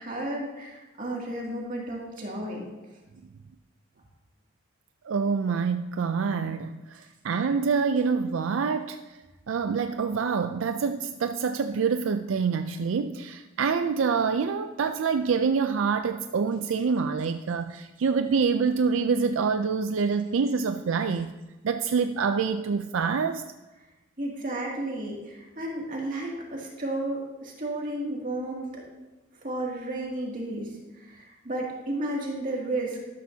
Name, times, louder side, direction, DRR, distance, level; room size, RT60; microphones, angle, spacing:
voice 1, 0.0-2.7 24.2-28.8 29.4-33.0, right 1 dB, 40° right, -2 dB, 2.4 m, -33 dB
voice 2, 5.0-9.2 9.5-21.3 21.6-23.4, right 5 dB, 75° right, 8 dB, 0.4 m, -26 dB
12.5 x 12.5 x 2.8 m, 1.1 s
head